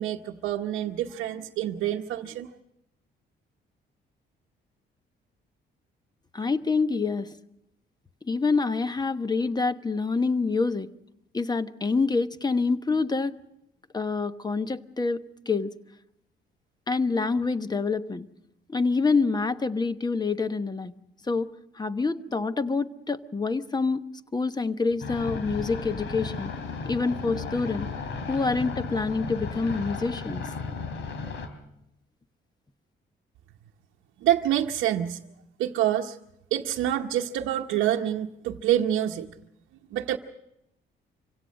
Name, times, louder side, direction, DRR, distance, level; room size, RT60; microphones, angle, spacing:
voice 1, 0.0-2.5 34.2-35.2 35.6-36.2 36.5-39.3 39.9-40.2, right 11 dB, 90° right, 1 dB, 0.9 m, -27 dB
voice 2, 6.3-7.3 8.3-10.9 11.3-13.3 13.9-15.7 16.9-18.3 18.7-20.9 21.3-21.5 21.8-24.0 24.3-26.5 26.8-27.9 28.3-30.4, left 4 dB, 20° left, 11 dB, 1.1 m, -26 dB
sound 1, 25.0-31.5, left 4 dB, 70° left, 3.2 m, -34 dB
25.5 x 17.0 x 6.4 m, 0.83 s
cardioid pair, 90°, 20 cm